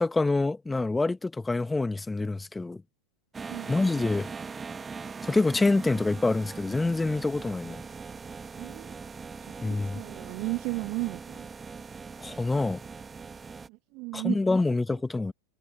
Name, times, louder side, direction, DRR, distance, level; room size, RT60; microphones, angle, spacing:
voice 1, 0.0-2.8 3.7-4.3 5.2-7.8 9.6-10.0 12.2-12.8 14.1-15.3, left 3 dB, 10° left, 1.8 m, -26 dB
sound 1, 3.3-13.7, right 5 dB, 15° right, 2.4 m, -41 dB
voice 2, 8.6-9.0 9.7-11.5 13.7-14.4, right 26 dB, 40° right, 0.9 m, -34 dB
figure-of-eight pair, 90°, 0 cm